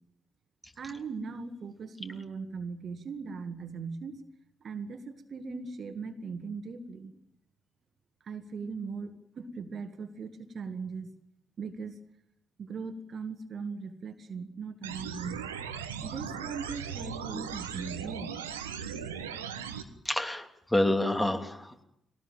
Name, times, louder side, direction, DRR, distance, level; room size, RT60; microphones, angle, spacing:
voice 1, 0.8-4.2 4.6-7.1 8.2-11.1 11.6-12.0 12.6-15.4 16.0-18.4, right 5 dB, 55° right, 9 dB, 1.9 m, -39 dB
sound 1, 14.8-19.8, right 7 dB, 85° right, 1.3 m, -38 dB
voice 2, 20.0-21.8, left 1 dB, 10° left, 6 dB, 3.1 m, -28 dB
21.5 x 18.5 x 9.1 m, 0.76 s
hypercardioid pair, 40°, 0 cm